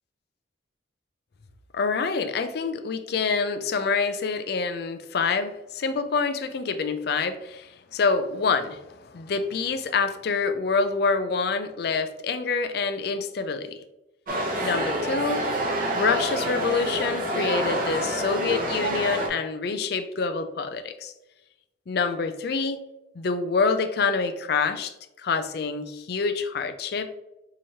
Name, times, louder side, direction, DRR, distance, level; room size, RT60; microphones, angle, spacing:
voice 1, 1.7-13.8 14.6-15.5 15.9-21.1 21.9-22.8 23.2-24.9 25.2-27.1, left 4 dB, 55° left, 9 dB, 0.4 m, -26 dB
sound 1, 14.3-19.3, right 1 dB, 45° right, 0.7 m, -27 dB
4.9 x 3.0 x 2.7 m, 0.91 s
head